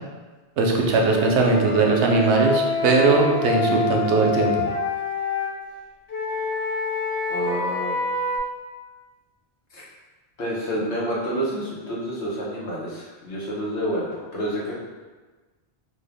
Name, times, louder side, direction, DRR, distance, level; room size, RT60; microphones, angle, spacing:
voice 1, 0.6-4.7, right 4 dB, 85° right, 1 dB, 0.9 m, -19 dB
Wind instrument woodwind instrument, 1.1-5.5 6.1-8.4, left 4 dB, 65° left, 0.8 m, -26 dB
voice 2, 7.3-8.0 9.7-9.8 10.4-14.7, right 1 dB, 85° left, -5 dB, 1.2 m, -29 dB
3.2 x 2.2 x 3.3 m, 1.3 s
omnidirectional pair, 1.1 m